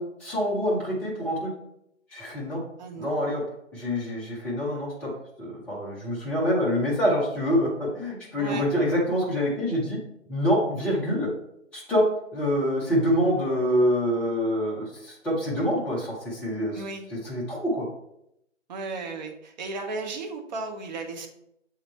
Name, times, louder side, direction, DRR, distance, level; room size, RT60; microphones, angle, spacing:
voice 1, 0.0-1.5 2.1-2.6 2.9-3.4 3.7-5.1 5.4-10.0 10.3-11.3 11.7-12.1 12.3-16.8 17.2-17.9, equal, 5° left, -6 dB, 0.6 m, -26 dB
voice 2, 2.8-3.3 8.4-8.7 16.7-17.0 18.7-21.3, right 3 dB, 35° right, 3 dB, 1.0 m, -35 dB
7.1 x 3.6 x 4.3 m, 0.78 s
figure-of-eight pair, 145°, 37 cm